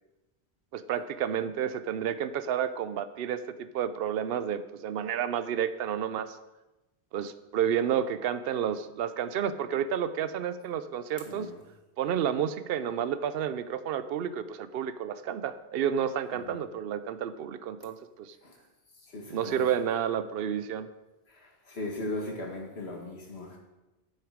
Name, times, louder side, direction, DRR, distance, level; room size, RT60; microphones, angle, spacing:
voice 1, 0.7-6.4 7.1-11.5 12.0-18.4 19.3-20.9, right 9 dB, 70° right, 12 dB, 0.8 m, -30 dB
voice 2, 11.3-11.6 16.3-16.6 18.4-18.6 19.0-19.7 21.3-23.6, left 2 dB, 90° left, 0 dB, 2.1 m, -38 dB
9.0 x 8.7 x 5.0 m, 1.0 s
omnidirectional pair, 1.1 m